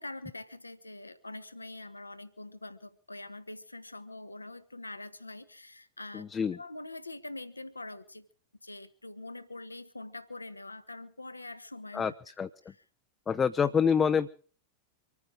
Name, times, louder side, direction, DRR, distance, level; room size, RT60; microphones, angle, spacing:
voice 1, 0.0-8.3 8.6-12.1 12.7-12.8, left 2 dB, 80° left, 13 dB, 1.3 m, -44 dB
voice 2, 6.1-6.6 11.9-12.1 12.4-12.5 13.3-14.3, left 6 dB, 20° left, 11 dB, 0.7 m, -26 dB
25.5 x 9.5 x 4.9 m, 0.43 s
figure-of-eight pair, 90°, 0 cm